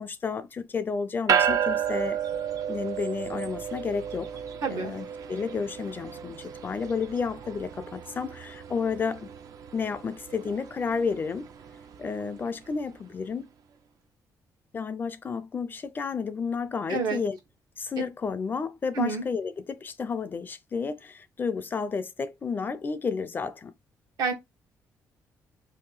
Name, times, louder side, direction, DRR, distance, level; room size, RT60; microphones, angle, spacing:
voice 1, 0.0-2.2 2.7-4.3 4.7-9.3 9.7-11.5 12.0-13.5 14.7-17.4 17.8-23.7, left 5 dB, 30° left, 0.4 m, -31 dB
sound 1, 1.3-12.9, right 8 dB, 65° right, 0.4 m, -32 dB
voice 2, 4.6-4.9 16.9-17.2 18.9-19.2 24.2-24.3, right 4 dB, 80° right, 1.0 m, -28 dB
2.8 x 2.5 x 3.8 m
cardioid pair, 125°, 6 cm